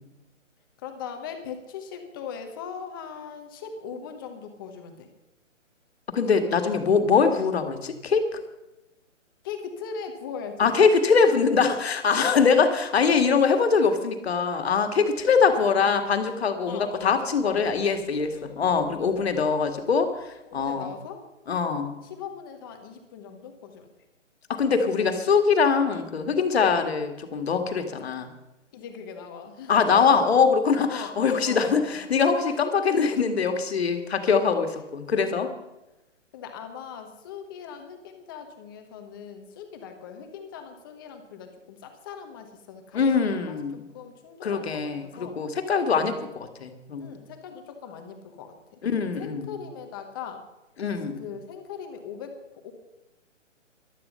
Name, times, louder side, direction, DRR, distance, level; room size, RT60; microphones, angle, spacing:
voice 1, 0.8-5.1 9.4-10.7 11.3-11.5 15.2-16.1 16.7-17.2 17.4-17.7 18.1-19.5 20.5-21.2 22.0-23.9 28.7-29.9 30.9-32.7 36.3-45.4 47.0-48.8 49.2-50.4 51.2-52.7, left 7 dB, 15° left, 5 dB, 1.2 m, -40 dB
voice 2, 6.1-8.4 10.6-20.9 21.5-21.9 24.5-28.3 29.7-35.5 42.9-43.8 44.4-47.2 48.8-49.6 50.8-51.2, left 5 dB, 55° left, 6 dB, 2.0 m, -23 dB
15.5 x 12.0 x 5.5 m, 0.98 s
hypercardioid pair, 165°, 38 cm